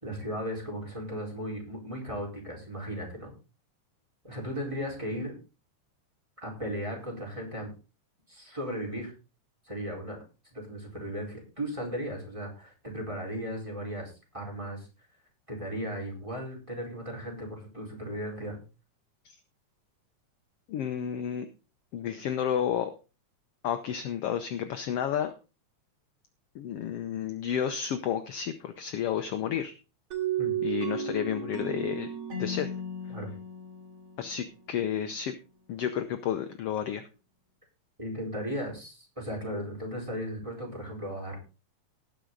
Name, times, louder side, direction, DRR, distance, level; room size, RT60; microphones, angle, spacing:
voice 1, 0.0-3.3 4.2-5.3 6.4-7.7 8.3-9.1 9.6-10.2 10.5-14.9 15.5-18.6 30.4-30.5 33.1-33.3 38.0-41.4, equal, 10° right, 0 dB, 4.2 m, -36 dB
voice 2, 20.7-21.5 21.9-22.9 23.6-25.3 26.5-29.7 30.6-32.1 32.4-32.7 34.2-35.3 35.7-37.0, left 9 dB, 70° left, 9 dB, 1.5 m, -31 dB
sound 1, 30.1-34.8, right 5 dB, 50° right, 3.2 m, -34 dB
19.0 x 6.3 x 3.9 m, 0.32 s
omnidirectional pair, 3.5 m